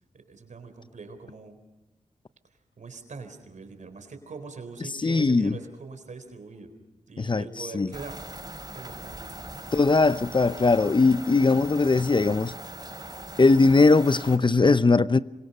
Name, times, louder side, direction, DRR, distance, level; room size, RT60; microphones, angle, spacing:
voice 1, 0.1-1.6 2.8-6.7 7.1-8.2 8.7-9.5, right 4 dB, 70° right, 4.0 m, -42 dB
voice 2, 5.0-5.6 7.2-7.4 7.7-7.9 9.7-12.5 13.4-15.2, left 3 dB, 35° left, 0.8 m, -20 dB
sound 1, 7.9-14.4, right 1 dB, 30° right, 6.6 m, -40 dB
26.5 x 24.5 x 5.6 m
cardioid pair, 40°, 13 cm